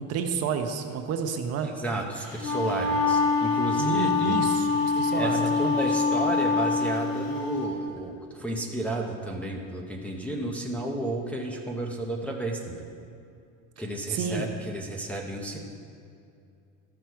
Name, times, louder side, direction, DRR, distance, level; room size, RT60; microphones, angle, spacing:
voice 1, 0.0-1.7 3.8-5.8 14.1-14.5, right 6 dB, 45° right, 6 dB, 0.8 m, -30 dB
voice 2, 1.6-4.4 5.1-12.9 13.8-15.6, right 2 dB, 5° left, -2 dB, 0.6 m, -32 dB
Wind instrument woodwind instrument, 2.2-7.6, left 4 dB, 40° left, 2.3 m, -25 dB
13.0 x 6.2 x 4.6 m, 2.5 s
cardioid pair, 145°, 35 cm